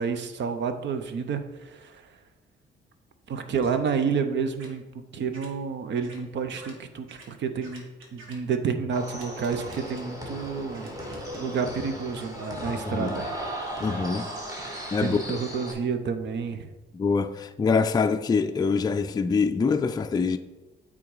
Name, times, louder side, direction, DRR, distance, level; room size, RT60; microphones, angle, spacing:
voice 1, 0.0-1.4 1.7-1.9 3.3-4.8 5.1-7.8 8.1-10.9 11.4-13.3 15.0-16.7, right 6 dB, 65° right, 0.8 m, -29 dB
sound 1, 3.6-3.8 4.6-4.7 5.3-5.5 6.0-6.2 6.5-6.7 7.1-7.3 7.6-8.4 9.1-10.0 10.7-11.4 12.1-12.9, right 3 dB, 85° right, 1.7 m, -48 dB
sound 2, 8.9-15.7, equal, 15° right, 1.6 m, -36 dB
voice 2, 12.8-13.2 13.8-14.3 14.9-15.2 16.9-20.4, left 5 dB, 20° left, 0.4 m, -24 dB
8.6 x 3.8 x 4.8 m
cardioid pair, 90°, 20 cm